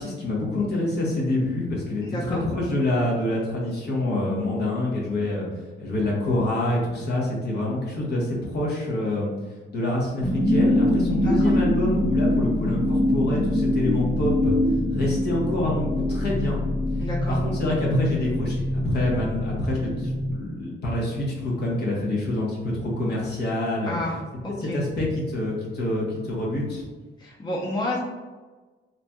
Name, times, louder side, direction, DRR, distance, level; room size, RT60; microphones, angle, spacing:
voice 1, 0.0-5.5 5.8-9.3 9.7-14.5 14.9-16.6 17.3-24.0 24.6-26.8, left 1 dB, 55° left, -3 dB, 1.0 m, -26 dB
voice 2, 2.0-2.4 11.2-11.6 17.0-17.4 23.9-24.1 24.4-24.8 27.2-28.0, left 1 dB, 20° left, -4 dB, 0.6 m, -30 dB
sound 1, 10.2-20.3, left 1 dB, ahead, 1.1 m, -24 dB
3.1 x 2.6 x 2.2 m, 1.3 s
cardioid pair, 90°, 20 cm